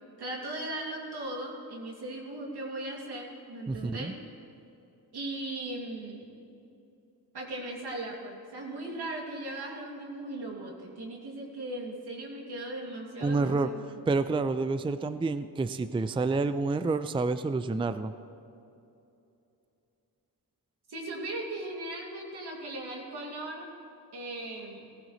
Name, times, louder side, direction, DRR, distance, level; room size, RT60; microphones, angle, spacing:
voice 1, 0.2-4.1 5.1-6.3 7.3-14.0 20.9-23.7 24.1-24.9, right 1 dB, 80° right, -1 dB, 2.6 m, -38 dB
voice 2, 3.7-4.1 13.2-13.7 14.1-18.1, right 3 dB, 15° right, 12 dB, 0.4 m, -28 dB
17.0 x 15.0 x 3.2 m, 2.8 s
cardioid pair, 65°, 39 cm